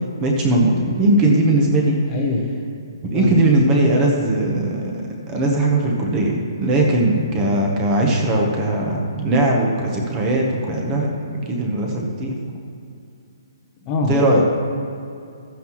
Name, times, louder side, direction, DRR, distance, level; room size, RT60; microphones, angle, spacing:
voice 1, 0.2-2.0 3.1-4.8 5.3-12.3 14.1-14.4, right 2 dB, 15° right, 0 dB, 1.0 m, -19 dB
voice 2, 2.1-2.5 3.1-3.4 13.8-14.4, left 4 dB, 15° left, -1 dB, 0.9 m, -23 dB
13.5 x 9.3 x 3.1 m, 2.5 s
hypercardioid pair, 170°, 2 cm